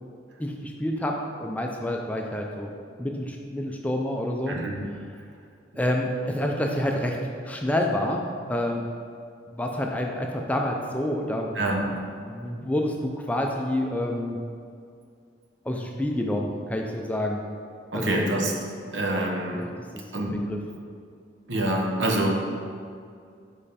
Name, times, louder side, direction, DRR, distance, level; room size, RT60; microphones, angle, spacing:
voice 1, 0.4-2.7 3.0-4.6 5.8-7.2 7.4-8.8 9.5-11.5 12.2-14.4 15.6-17.4 17.9-18.3 19.5-19.7 19.9-20.6, left 1 dB, 10° left, 1 dB, 0.4 m, -28 dB
voice 2, 11.5-11.9 17.9-18.5 18.9-19.7 20.1-20.4 21.5-22.3, right 1 dB, 70° right, 0 dB, 1.0 m, -26 dB
5.4 x 5.4 x 4.1 m, 2.3 s
head